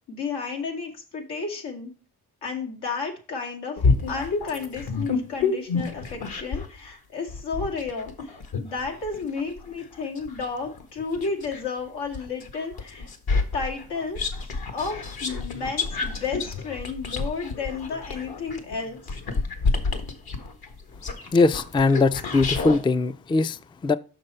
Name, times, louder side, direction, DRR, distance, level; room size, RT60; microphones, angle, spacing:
voice 1, 0.1-1.9 2.4-3.8 4.1-8.1 8.6-13.1 13.5-14.2 14.7-19.0, left 4 dB, 90° left, 2.2 m, -32 dB
sound 1, 3.8-6.8 7.3-11.7 12.1-22.8, left 4 dB, 65° left, 1.6 m, -29 dB
voice 2, 21.3-24.0, left 3 dB, 15° left, 0.4 m, -21 dB
6.6 x 5.9 x 4.4 m
cardioid pair, 80°, 39 cm